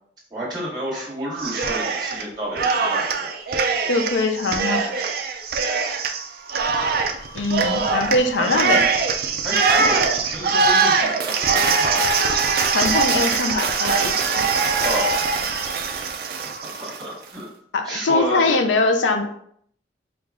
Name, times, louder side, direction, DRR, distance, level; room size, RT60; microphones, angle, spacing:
voice 1, 0.3-3.3 8.4-8.5 9.4-12.2 14.8-15.2 16.6-17.5 17.8-18.6, right 1 dB, 25° right, -7 dB, 1.7 m, -30 dB
Cheering, 1.4-2.2 2.5-17.0, right 4 dB, 55° right, 0.5 m, -22 dB
voice 2, 3.9-4.8 7.3-8.8 12.7-14.5 17.7-19.3, left 3 dB, 85° left, 6 dB, 0.5 m, -22 dB
5.0 x 2.4 x 3.5 m, 0.65 s
head